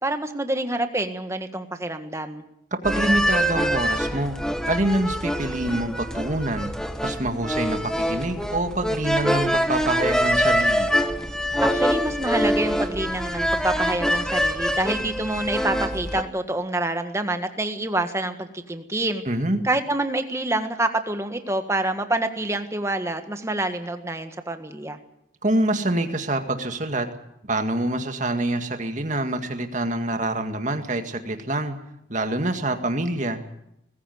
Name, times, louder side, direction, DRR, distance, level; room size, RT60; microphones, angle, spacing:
voice 1, 0.0-2.4 11.6-19.2 19.6-25.0, right 2 dB, 15° right, 7 dB, 1.5 m, -27 dB
voice 2, 2.7-4.4 4.7-6.7 7.0-10.9 19.3-19.6 25.4-27.1 27.4-31.8 32.1-33.4, right 1 dB, 40° right, 6 dB, 2.0 m, -26 dB
sound 1, 2.8-16.2, equal, 5° left, 1.1 m, -24 dB
20.5 x 15.5 x 9.4 m, 0.81 s
head